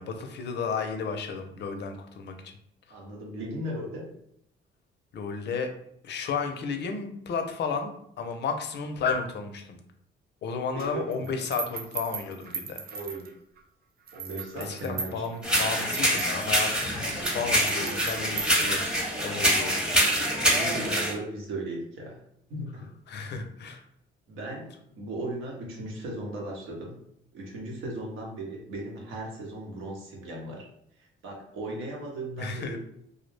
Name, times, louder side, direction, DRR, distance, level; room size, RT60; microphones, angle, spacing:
voice 1, 0.0-2.3 5.1-5.7 6.0-9.8 10.4-12.8 14.5-18.9 19.2-19.8 23.1-23.8 32.4-32.8, left 5 dB, 60° left, 5 dB, 0.5 m, -33 dB
voice 2, 2.9-4.1 10.7-11.3 12.9-13.3 14.1-15.3 20.2-22.2 22.5-22.9 24.3-27.0 27.3-30.6 31.0-32.8, right 1 dB, 85° right, -1 dB, 0.8 m, -37 dB
sound 1, 10.8-13.6 14.1-19.2, right 5 dB, 50° right, 0.4 m, -39 dB
sound 2, 15.4-21.1, equal, 5° right, 0.7 m, -25 dB
2.3 x 2.0 x 3.1 m, 0.71 s
cardioid pair, 90°, 20 cm